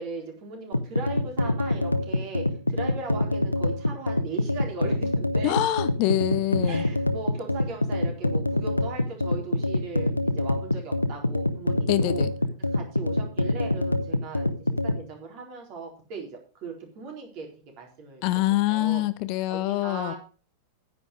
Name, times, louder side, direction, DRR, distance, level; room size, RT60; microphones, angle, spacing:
voice 1, 0.0-5.6 6.6-12.3 12.6-17.5 17.8-18.4 18.7-19.0 19.5-20.2, right 4 dB, 40° right, 4.1 m, -39 dB
sound 1, 0.7-15.0, left 2 dB, 85° left, 0.7 m, -26 dB
voice 2, 5.4-6.9 11.9-12.3 18.2-20.1, left 15 dB, 45° left, 0.7 m, -25 dB
9.9 x 8.9 x 4.9 m
figure-of-eight pair, 90°, 0 cm